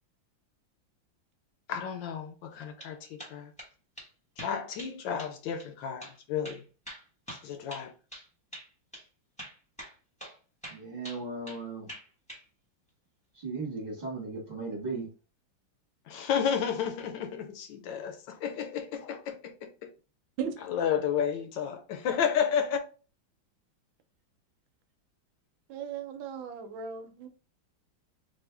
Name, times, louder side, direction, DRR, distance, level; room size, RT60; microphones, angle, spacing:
voice 1, 1.7-3.5 4.4-6.6 7.4-7.9 16.1-19.9 20.6-22.8, left 8 dB, 75° left, 1.3 m, -32 dB
sound 1, 2.5-2.9 3.2-3.7 4.0-4.1 4.4-4.9 5.2-5.3 5.6-5.7 6.0-6.2 6.4-8.3 8.5-8.7 8.9-9.0 9.4-10.4 10.6-11.6 11.9-12.4, right 1 dB, 5° left, 1.0 m, -44 dB
voice 2, 10.7-11.9 13.3-15.1, right 3 dB, 25° right, 1.3 m, -36 dB
voice 3, 25.7-27.3, right 7 dB, 85° right, 1.4 m, -37 dB
3.7 x 2.6 x 3.4 m
omnidirectional pair, 2.2 m